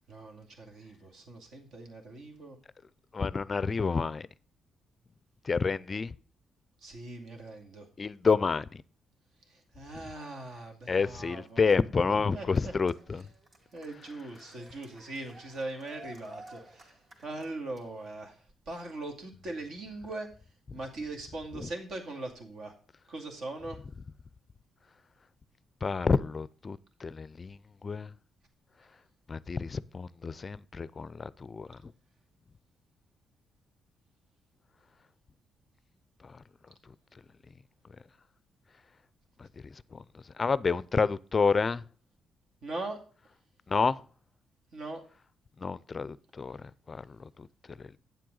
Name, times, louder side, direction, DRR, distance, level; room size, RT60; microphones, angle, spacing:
voice 1, 0.1-2.6 6.8-7.9 9.5-11.8 12.3-12.7 13.1-13.2 13.7-16.9 17.2-18.4 18.7-20.3 20.7-22.7 23.1-23.8 42.6-43.0 44.7-45.0, right 2 dB, 65° right, 2.3 m, -40 dB
voice 2, 3.1-4.3 5.4-6.1 8.0-8.7 10.9-13.3 21.6-21.7 25.8-28.1 29.3-31.8 36.2-36.3 39.9-41.8 43.7-44.0 45.6-46.6 46.9-47.1 47.4-47.8, left 5 dB, 35° left, 0.4 m, -29 dB
Cheering, 11.2-18.1, right 1 dB, 45° right, 2.3 m, -54 dB
9.3 x 7.7 x 3.8 m
cardioid pair, 90°, 0 cm